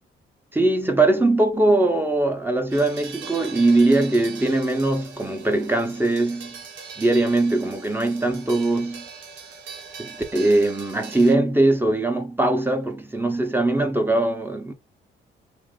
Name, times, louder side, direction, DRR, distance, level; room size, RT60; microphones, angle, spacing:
voice 1, 0.5-6.6 7.0-9.1 10.0-14.7, right 2 dB, 10° right, 0.8 m, -21 dB
sound 1, 2.7-11.4, right 5 dB, 75° right, 1.0 m, -41 dB
3.2 x 2.6 x 3.6 m
cardioid pair, 90°, 20 cm